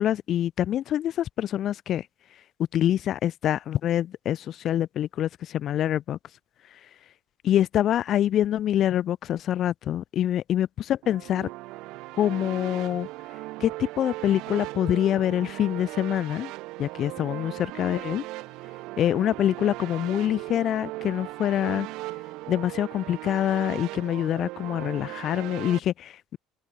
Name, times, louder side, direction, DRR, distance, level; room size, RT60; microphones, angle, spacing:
voice 1, 0.0-2.0 2.7-6.2 7.4-10.7 11.1-11.5 12.2-13.1 13.6-16.5 16.8-18.2 19.0-21.9 22.5-26.4, left 11 dB, 55° left, 4.6 m, -25 dB
sound 1, 11.0-25.8, right 20 dB, 65° right, 2.7 m, -38 dB
open air
hypercardioid pair, 65°, 0 cm